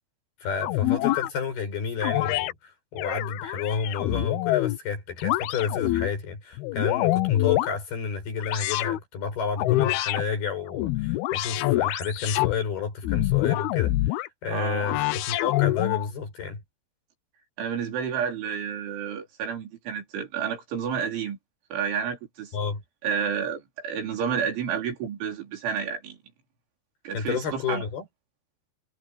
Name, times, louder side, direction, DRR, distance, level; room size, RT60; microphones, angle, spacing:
voice 1, 0.4-16.6 22.5-22.8 27.1-28.1, left 6 dB, 55° left, 7.1 m, -31 dB
sound 1, 0.6-1.3 2.0-2.5 3.0-4.8 5.2-6.1 6.6-7.7 8.4-9.0 9.6-10.2 10.7-12.5 13.0-14.3 14.8-16.1, left 17 dB, 80° left, 2.2 m, -25 dB
voice 2, 14.5-14.9 17.6-21.4 21.7-22.6 23.0-26.2 27.0-27.8, right 7 dB, 85° right, 6.7 m, -30 dB
omnidirectional pair, 5.3 m